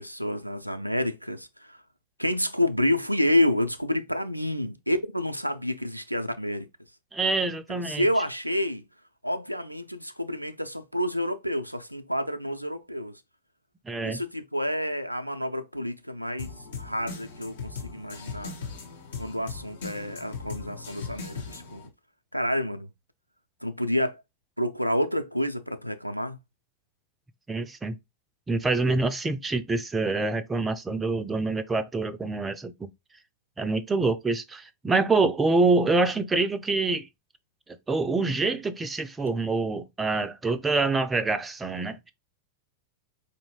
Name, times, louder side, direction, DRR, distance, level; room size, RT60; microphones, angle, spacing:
voice 1, 0.0-1.8 2.2-6.7 7.7-8.8 9.2-13.1 14.0-18.5 19.2-21.8 22.3-22.9 23.6-24.2 24.6-26.4, left 1 dB, 90° right, 0.4 m, -29 dB
voice 2, 7.1-8.1 13.9-14.2 27.5-28.0 28.5-32.9 33.6-37.1 37.9-42.1, right 3 dB, 15° right, 0.4 m, -26 dB
sound 1, 16.4-21.9, left 5 dB, 65° left, 0.9 m, -39 dB
4.3 x 2.6 x 2.9 m
figure-of-eight pair, 90°, 0 cm